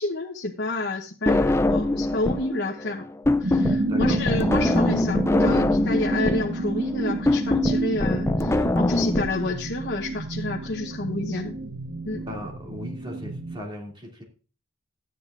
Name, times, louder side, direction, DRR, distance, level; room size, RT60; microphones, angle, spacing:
voice 1, 0.0-3.1 3.4-11.5 12.1-12.2, left 2 dB, 65° left, -1 dB, 1.1 m, -29 dB
sound 1, 1.3-2.5 2.8-9.3, left 2 dB, 15° left, 0.4 m, -23 dB
sound 2, 3.4-13.6, right 2 dB, 55° right, 1.2 m, -29 dB
voice 2, 3.6-4.2 12.2-14.2, left 1 dB, 25° right, -1 dB, 2.7 m, -37 dB
14.0 x 9.6 x 2.6 m, 0.36 s
head